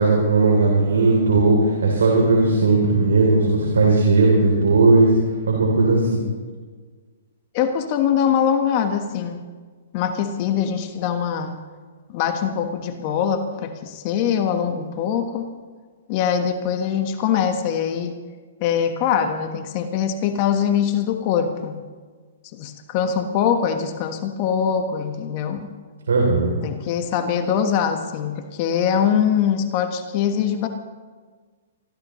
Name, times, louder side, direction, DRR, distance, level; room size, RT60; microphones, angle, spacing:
voice 1, 0.0-5.1 5.5-6.2 26.1-26.6, right 3 dB, 85° right, 0 dB, 3.2 m, -17 dB
voice 2, 7.5-9.4 9.9-11.6 12.1-15.5 16.1-18.2 18.6-21.8 22.5-25.7 26.6-30.7, left 8 dB, 40° left, 6 dB, 1.3 m, -23 dB
24.5 x 15.5 x 3.2 m, 1.5 s
hypercardioid pair, 130°, 0 cm